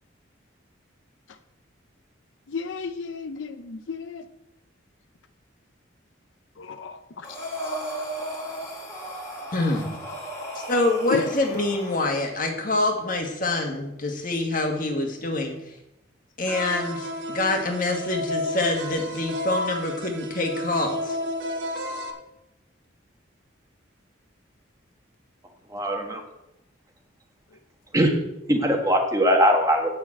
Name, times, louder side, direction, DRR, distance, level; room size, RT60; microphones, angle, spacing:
voice 1, 2.5-4.2 6.6-7.0 11.1-11.2, left 5 dB, 75° left, 9 dB, 0.6 m, -32 dB
Breathing, 7.2-12.2, equal, 15° left, 2.5 m, -35 dB
voice 2, 9.5-9.9 10.5-15.8 16.4-21.2, left 2 dB, 45° left, 2 dB, 1.7 m, -26 dB
sound 1, 16.5-22.1, left 1 dB, 70° right, 1.6 m, -32 dB
voice 3, 25.7-26.2 27.9-28.1 28.5-29.9, equal, 15° right, 2 dB, 1.4 m, -21 dB
8.7 x 6.3 x 7.5 m, 0.89 s
head